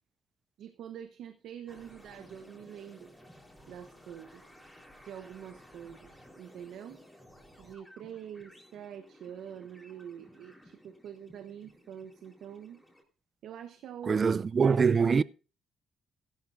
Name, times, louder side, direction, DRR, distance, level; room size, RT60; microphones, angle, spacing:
voice 1, 0.6-3.1 3.7-4.4 5.0-6.1 6.4-7.0 7.6-12.8 13.4-14.2 14.6-15.0, right 9 dB, 80° right, 1.0 m, -45 dB
sound 1, 1.7-13.0, equal, ahead, 3.8 m, -56 dB
voice 2, 14.1-15.2, right 5 dB, 40° right, 0.4 m, -24 dB
15.5 x 12.0 x 2.6 m
cardioid pair, 90°, 0 cm